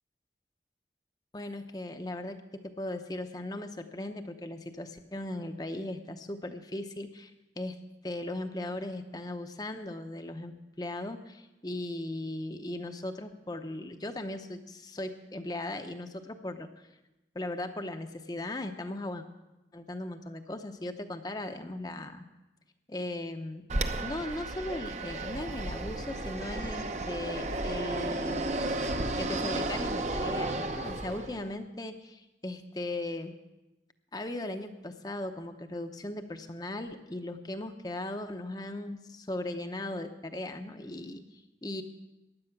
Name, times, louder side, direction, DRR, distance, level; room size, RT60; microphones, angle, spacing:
voice 1, 1.3-7.3 7.6-7.8 8.0-16.7 17.3-19.2 19.7-22.2 22.9-23.7 24.0-28.5 29.2-33.3 34.1-41.8, left 1 dB, 20° left, 6 dB, 0.7 m, -38 dB
Fixed-wing aircraft airplane, 23.7-31.5, right 2 dB, 40° right, 0.8 m, -33 dB
15.5 x 10.5 x 5.9 m, 1.0 s
head